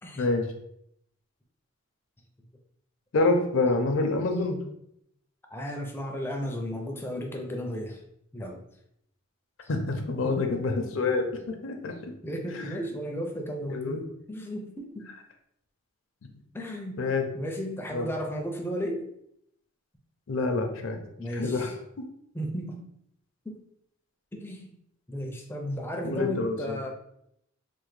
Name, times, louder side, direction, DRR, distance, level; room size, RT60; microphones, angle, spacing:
voice 1, 3.1-4.6 9.7-12.1 12.5-12.8 13.7-14.0 17.0-17.3 17.9-18.1 20.3-21.0 21.3-21.7 26.0-26.8, left 3 dB, 65° left, 5 dB, 0.5 m, -27 dB
voice 2, 5.5-8.0 8.3-8.6 10.4-10.6 12.2-15.1 16.5-17.0 17.3-19.1 21.2-21.7 22.3-22.9 23.5-23.6 24.3-24.7 25.1-26.9, equal, 10° left, 2 dB, 0.4 m, -34 dB
3.3 x 2.1 x 3.1 m, 0.74 s
head